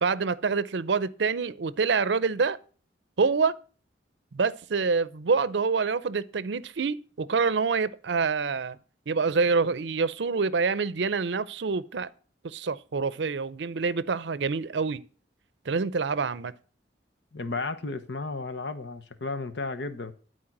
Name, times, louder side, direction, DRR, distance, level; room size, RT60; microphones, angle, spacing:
voice 1, 0.0-2.6 3.2-3.5 4.3-8.8 9.1-12.1 12.4-15.0 15.7-16.5, right 4 dB, 70° right, 0.6 m, -26 dB
voice 2, 17.3-20.1, left 3 dB, 70° left, 1.0 m, -33 dB
11.5 x 4.6 x 5.9 m
head